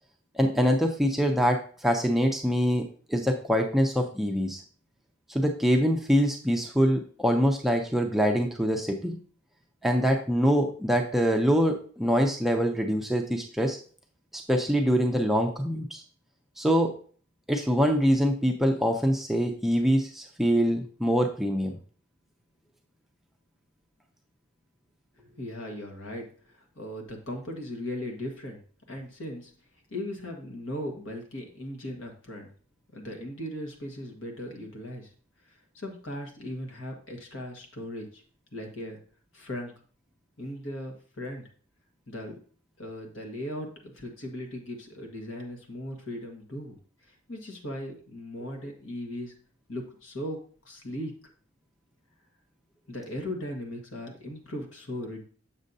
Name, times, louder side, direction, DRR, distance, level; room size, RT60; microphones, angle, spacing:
voice 1, 0.4-4.6 5.3-9.2 9.8-13.8 14.5-16.0 16.6-17.0 17.5-21.8, equal, ahead, 2 dB, 0.5 m, -24 dB
voice 2, 25.2-28.6 28.9-29.5 29.9-32.5 32.9-35.1 35.4-38.2 38.5-39.0 39.3-39.7 40.4-41.4 42.1-42.4 42.8-46.8 47.1-49.3 49.7-51.2 52.9-55.2, left 1 dB, 65° left, 3 dB, 1.5 m, -38 dB
7.3 x 6.4 x 2.7 m, 0.44 s
head